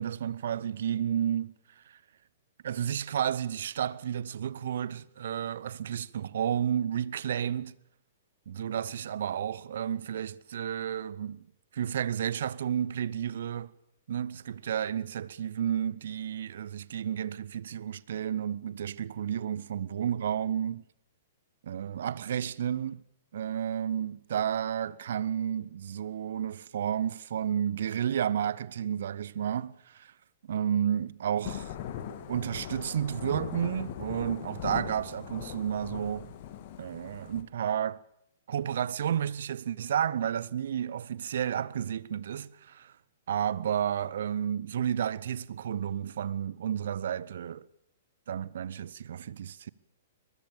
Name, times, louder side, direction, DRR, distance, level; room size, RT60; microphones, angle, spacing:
voice 1, 0.0-1.5 1.9-2.0 2.6-7.7 8.5-11.4 11.7-13.7 14.1-20.8 21.6-23.0 23.3-30.1 30.5-31.7 32.3-36.3 36.8-38.0 38.5-42.9 43.3-47.7 48.3-49.7, right 9 dB, 60° right, 0.8 m, -31 dB
Thunder / Rain, 31.4-37.4, left 10 dB, 45° left, 2.4 m, -40 dB
22.5 x 21.0 x 7.0 m
figure-of-eight pair, 110°, 0 cm